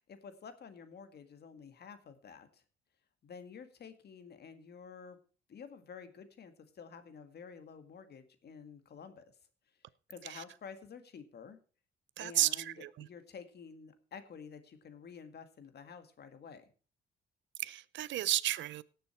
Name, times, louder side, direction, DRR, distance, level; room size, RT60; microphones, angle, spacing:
voice 1, 0.0-2.6 3.2-5.2 5.5-9.3 10.1-11.6 12.2-16.6, left 6 dB, 55° left, 1.9 m, -50 dB
voice 2, 12.2-13.1 17.6-18.8, right 14 dB, 70° right, 0.6 m, -33 dB
18.0 x 6.9 x 4.4 m
cardioid pair, 90°, 20 cm